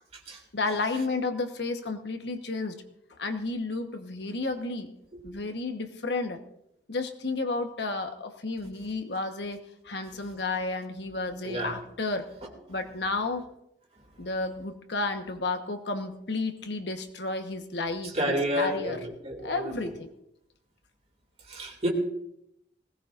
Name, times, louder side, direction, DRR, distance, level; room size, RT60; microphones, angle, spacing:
voice 1, 0.5-2.8 3.2-4.9 5.2-6.4 6.9-12.3 12.7-13.5 14.2-19.0 19.4-20.1, left 3 dB, 75° left, 6 dB, 1.2 m, -32 dB
voice 2, 18.1-19.9 21.5-21.9, equal, 35° right, 1 dB, 2.5 m, -30 dB
20.0 x 17.5 x 2.6 m, 0.79 s
head